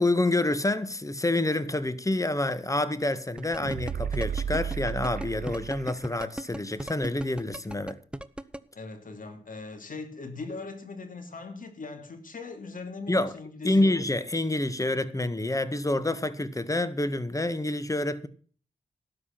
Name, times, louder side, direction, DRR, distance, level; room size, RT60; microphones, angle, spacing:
voice 1, 0.0-8.0 13.1-13.3 13.6-18.3, left 2 dB, 20° left, 1.7 m, -27 dB
sound 1, 3.3-6.3 6.6-6.7, right 8 dB, 65° right, 0.8 m, -33 dB
sound 2, 3.4-8.6, right 1 dB, 5° right, 1.1 m, -35 dB
voice 2, 8.7-13.9, left 3 dB, 60° left, 2.9 m, -40 dB
13.0 x 9.6 x 6.0 m
cardioid pair, 55°, 16 cm